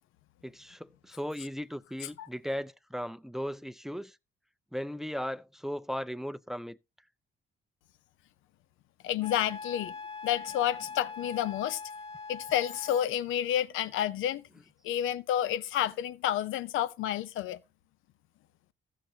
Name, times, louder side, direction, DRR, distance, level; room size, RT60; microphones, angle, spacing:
voice 1, 0.4-4.2 4.7-6.8, equal, ahead, 0.4 m, -37 dB
voice 2, 9.0-10.0 10.2-11.8 12.3-14.4 14.8-17.6, left 11 dB, 85° left, 0.6 m, -30 dB
Wind instrument woodwind instrument, 9.2-13.1, left 4 dB, 30° left, 1.2 m, -42 dB
14.5 x 6.5 x 2.8 m
cardioid pair, 90°, 20 cm